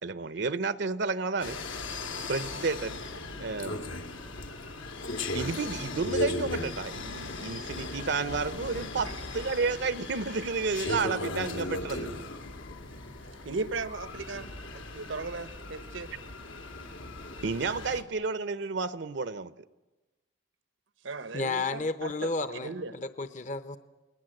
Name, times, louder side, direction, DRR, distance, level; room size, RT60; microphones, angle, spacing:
voice 1, 0.0-1.6 2.3-3.0 3.4-3.8 5.3-9.1 9.3-12.1 17.4-19.5, right 4 dB, 65° right, 14 dB, 0.8 m, -31 dB
sound 1, 1.4-18.0, left 2 dB, 85° left, 2.5 m, -37 dB
voice 2, 13.4-14.5 14.7-16.1 21.0-22.9, right 3 dB, 85° right, 13 dB, 1.1 m, -37 dB
voice 3, 21.3-23.8, left 3 dB, 40° left, 12 dB, 0.9 m, -32 dB
29.0 x 20.0 x 7.9 m, 1.1 s
head